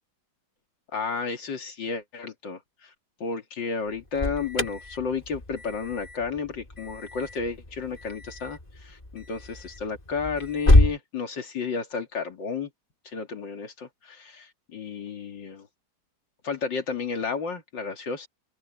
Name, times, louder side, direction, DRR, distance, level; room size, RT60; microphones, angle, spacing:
voice 1, 0.9-2.6 3.2-12.7 13.0-15.7 16.4-18.3, left 5 dB, 90° left, 3.1 m, -32 dB
Alarm, 3.9-11.0, left 1 dB, 20° left, 3.0 m, -27 dB
open air
omnidirectional pair, 1.9 m